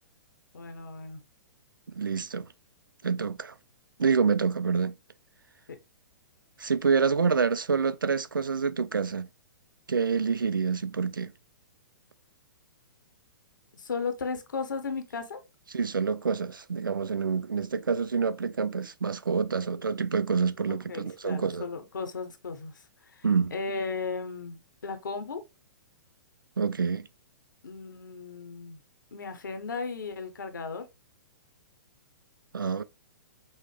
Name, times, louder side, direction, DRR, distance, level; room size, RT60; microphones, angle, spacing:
voice 1, 0.5-1.2 13.7-15.4 20.7-23.3 23.5-25.4 27.6-28.8 29.1-30.9, left 4 dB, 70° left, 0.8 m, -36 dB
voice 2, 1.9-2.5 3.0-3.5 4.0-4.9 6.6-9.3 9.9-11.3 15.7-21.7 23.2-23.5 26.6-27.1 32.5-32.8, right 5 dB, 80° right, 0.4 m, -27 dB
5.5 x 2.0 x 3.2 m
figure-of-eight pair, 115°, 11 cm